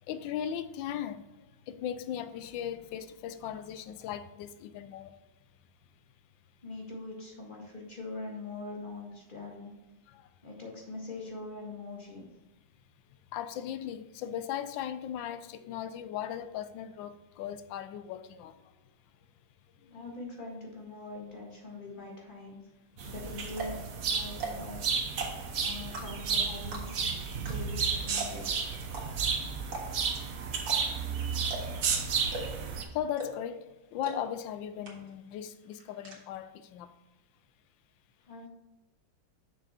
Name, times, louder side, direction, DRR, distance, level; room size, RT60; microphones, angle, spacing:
voice 1, 0.1-1.2 1.7-5.1 10.1-10.3 13.3-18.5 25.2-25.4 32.9-33.6 33.9-36.9, left 10 dB, 75° left, 1.2 m, -37 dB
voice 2, 6.6-9.7 10.4-12.3 19.9-22.6 23.1-24.8 25.6-27.0 27.4-28.5 38.2-38.5, left 3 dB, 25° left, 1.8 m, -42 dB
sound 1, 23.0-32.8, right 5 dB, 55° right, 1.1 m, -32 dB
sound 2, 23.0-23.1 23.5-23.8 24.3-24.7 25.1-25.5 25.9-26.3 26.7-27.1 27.4-27.5 27.8-27.9 28.2-28.5 28.9-29.0 29.6-30.1 30.6-30.8 31.0-31.1 31.5-31.8 32.3-32.7 33.2-33.5 34.0-34.1 34.5-34.6 34.8-35.3 35.5-36.2, right 3 dB, 75° right, 2.5 m, -38 dB
6.6 x 6.2 x 4.3 m
omnidirectional pair, 2.2 m